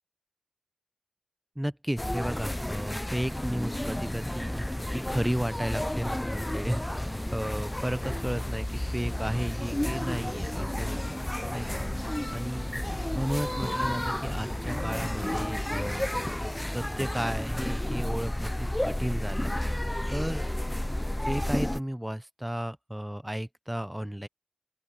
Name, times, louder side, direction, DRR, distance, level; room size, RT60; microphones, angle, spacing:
voice 1, 1.6-11.2 11.5-12.9 13.1-16.1 16.6-19.5 20.1-20.4 21.2-24.3, equal, 10° right, 0.8 m, -33 dB
sound 1, 2.0-21.8, left 1 dB, 20° left, 0.7 m, -31 dB
open air
wide cardioid pair, 40°, 0 cm